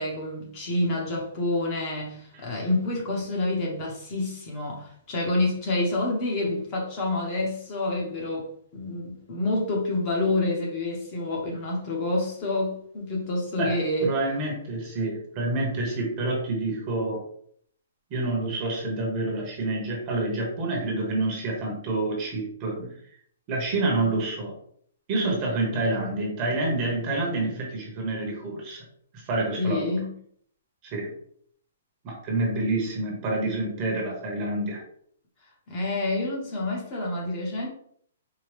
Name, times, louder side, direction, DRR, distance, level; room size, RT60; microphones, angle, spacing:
voice 1, 0.0-8.5 8.7-14.1 29.6-30.2 35.7-37.7, left 2 dB, 25° left, -2 dB, 1.0 m, -28 dB
voice 2, 13.6-17.2 18.1-23.0 23.5-24.5 25.1-28.8 29.1-30.0 30.8-31.1 32.0-34.8, right 2 dB, 25° right, -1 dB, 1.0 m, -28 dB
4.7 x 2.3 x 3.2 m, 0.63 s
hypercardioid pair, 175°, 0 cm